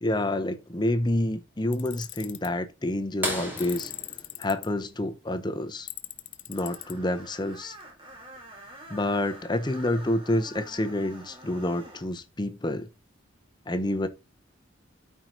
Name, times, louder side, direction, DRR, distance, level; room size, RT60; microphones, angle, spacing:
voice 1, 0.0-3.9 4.4-5.9 6.5-7.8 8.9-12.9 13.7-14.1, left 1 dB, 20° left, 0.7 m, -28 dB
Tools, 1.7-2.5 3.6-4.7 5.9-6.9, left 16 dB, 65° left, 0.7 m, -40 dB
sound 1, 3.2-5.7 7.6-7.7 9.9-10.0 11.7-12.0 12.8-12.9, equal, 10° right, 2.4 m, -35 dB
Screech, 6.5-12.1, right 1 dB, 25° right, 2.0 m, -47 dB
13.5 x 4.6 x 2.5 m
head